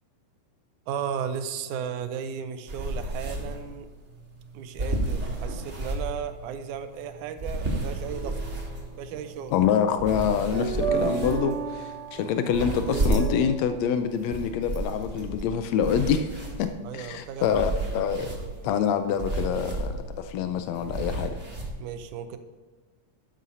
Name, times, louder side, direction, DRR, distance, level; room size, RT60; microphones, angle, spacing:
voice 1, 0.9-3.9 4.5-8.4 9.0-9.6 16.8-17.6 18.2-18.7 21.8-22.4, right 8 dB, 80° right, 9 dB, 2.1 m, -35 dB
sound 1, 2.7-21.7, right 2 dB, 30° right, 1.4 m, -33 dB
sound 2, 7.8-13.4, right 6 dB, 65° right, 1.9 m, -33 dB
voice 2, 9.5-18.3 18.6-21.4, left 8 dB, 85° left, 9 dB, 1.6 m, -26 dB
12.5 x 11.5 x 2.8 m, 1.4 s
omnidirectional pair, 3.7 m